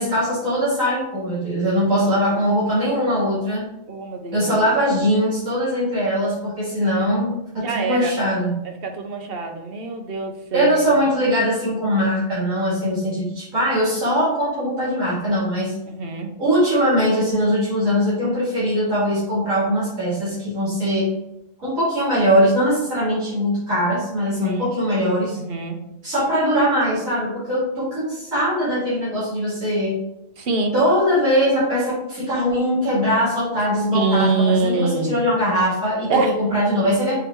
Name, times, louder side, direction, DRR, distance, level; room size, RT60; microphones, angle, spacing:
voice 1, 0.0-3.7 4.3-8.6 10.5-15.7 16.4-21.1 21.6-25.4 26.0-30.0 30.7-37.1, equal, 75° right, -9 dB, 3.0 m, -21 dB
voice 2, 3.9-4.6 7.6-8.2 8.8-10.9 15.9-16.3 24.4-24.6 25.4-25.8 30.4-30.8 33.9-35.2 36.1-36.4, right 3 dB, 50° right, 3 dB, 1.0 m, -24 dB
6.2 x 3.4 x 4.5 m, 0.87 s
omnidirectional pair, 1.4 m